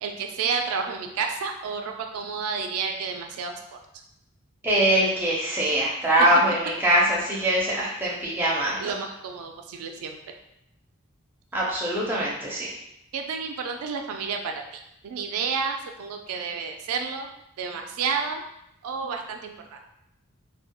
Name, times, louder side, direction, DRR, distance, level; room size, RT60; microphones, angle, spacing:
voice 1, 0.0-3.8 8.8-10.3 13.1-17.3 17.6-18.4 18.8-19.8, right 5 dB, 85° right, 4 dB, 0.3 m, -31 dB
voice 2, 4.6-8.9 11.5-12.7, right 1 dB, 10° right, -5 dB, 0.4 m, -23 dB
2.2 x 2.0 x 2.8 m, 0.80 s
head